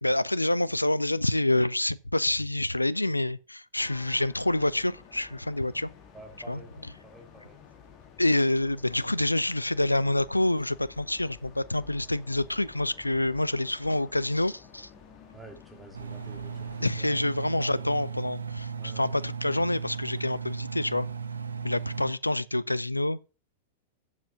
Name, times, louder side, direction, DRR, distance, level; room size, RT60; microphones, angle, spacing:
voice 1, 0.0-5.9 6.5-6.6 8.2-14.9 16.8-21.1 21.6-23.2, left 1 dB, 85° left, 0.4 m, -27 dB
sound 1, 3.8-16.9, left 7 dB, 35° left, 2.4 m, -52 dB
voice 2, 6.1-6.7 7.0-7.6 15.3-17.3 17.6-18.1 18.7-19.1, right 3 dB, 10° right, 2.6 m, -49 dB
Engine, 15.9-22.1, right 6 dB, 75° right, 0.8 m, -36 dB
7.6 x 7.3 x 5.9 m
figure-of-eight pair, 90°, 0 cm